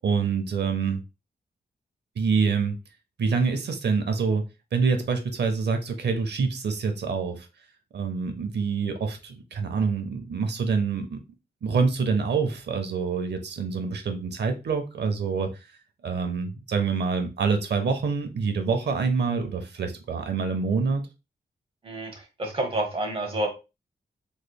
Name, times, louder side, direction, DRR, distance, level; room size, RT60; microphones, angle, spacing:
voice 1, 0.0-1.0 2.2-2.8 3.2-7.5 7.9-11.2 11.6-15.5 16.0-21.0, right 5 dB, 80° right, 6 dB, 0.7 m, -26 dB
voice 2, 21.8-23.5, right 1 dB, 35° right, 2 dB, 1.0 m, -29 dB
3.2 x 3.1 x 2.2 m, 0.28 s
wide cardioid pair, 120°, 17 cm